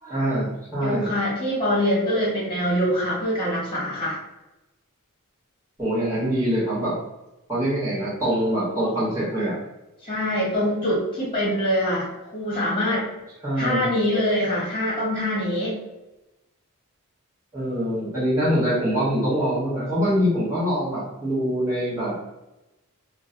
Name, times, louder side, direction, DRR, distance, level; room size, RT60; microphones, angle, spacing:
voice 1, 0.0-1.1 5.8-7.0 7.5-9.5 13.4-13.9 17.5-22.2, equal, 15° right, -10 dB, 1.2 m, -24 dB
voice 2, 0.8-4.2 10.0-13.1 13.6-15.8, equal, 25° left, -6 dB, 1.2 m, -24 dB
2.3 x 2.1 x 3.7 m, 0.97 s
head